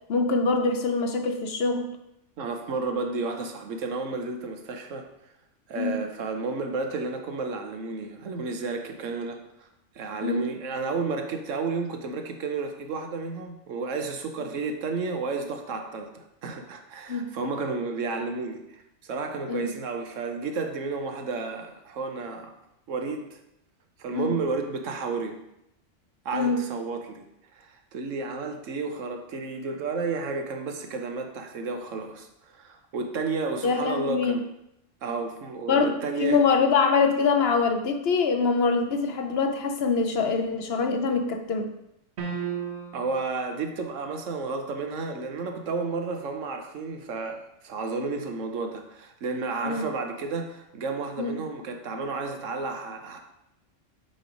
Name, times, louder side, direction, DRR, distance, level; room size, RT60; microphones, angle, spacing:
voice 1, 0.1-1.9 5.8-6.0 10.2-10.5 17.1-17.3 19.5-19.7 24.1-24.3 26.3-26.6 33.6-34.4 35.7-35.9 36.2-41.7 49.6-49.8 51.2-51.4, left 4 dB, 60° left, 6 dB, 0.9 m, -24 dB
voice 2, 2.4-5.1 5.7-9.7 9.9-22.5 22.9-23.4 24.0-25.4 26.2-27.3 27.5-32.3 32.5-34.4 35.0-36.4 42.9-53.2, right 4 dB, 85° right, 5 dB, 1.2 m, -32 dB
sound 1, 42.2-43.2, right 7 dB, 60° right, 1.2 m, -33 dB
7.6 x 3.3 x 5.1 m, 0.83 s
omnidirectional pair, 1.3 m